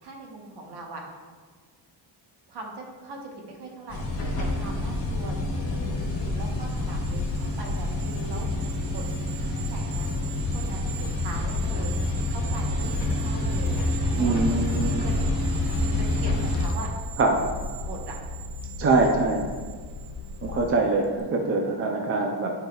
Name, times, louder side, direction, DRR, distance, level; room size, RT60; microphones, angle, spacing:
voice 1, 0.0-1.0 2.5-4.1 4.4-8.5 8.9-9.0 9.3-10.1 10.4-11.9 12.3-13.9 14.1-14.7 15.0-15.2 15.9-16.9 17.8-18.2 21.1-21.4, right 2 dB, 60° right, 0 dB, 1.3 m, -41 dB
sound 1, 3.9-16.7, left 2 dB, 30° left, 1.5 m, -27 dB
sound 2, 4.9-20.7, left 3 dB, 60° left, 0.6 m, -38 dB
sound 3, 6.1-20.7 21.0-21.2, right 10 dB, 90° right, 0.7 m, -43 dB
voice 2, 14.2-15.0 17.2-17.4 18.8-19.4 20.4-22.5, right 3 dB, 30° right, 1 dB, 0.5 m, -23 dB
9.5 x 4.7 x 2.4 m, 1.5 s
cardioid pair, 145°, 45 cm